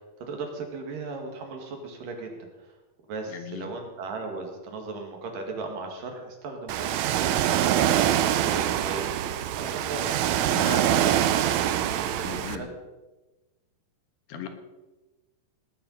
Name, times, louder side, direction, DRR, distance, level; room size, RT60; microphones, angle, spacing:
voice 1, 0.2-2.7 3.1-9.1 9.6-12.7, right 3 dB, 70° right, 3 dB, 3.6 m, -37 dB
voice 2, 3.3-3.7 10.5-10.9 12.2-12.7 14.3-14.5, left 9 dB, 80° left, 6 dB, 3.1 m, -37 dB
Ocean, 6.7-12.6, right 11 dB, 90° right, 1.6 m, -24 dB
19.0 x 9.3 x 5.5 m, 1.1 s
omnidirectional pair, 4.1 m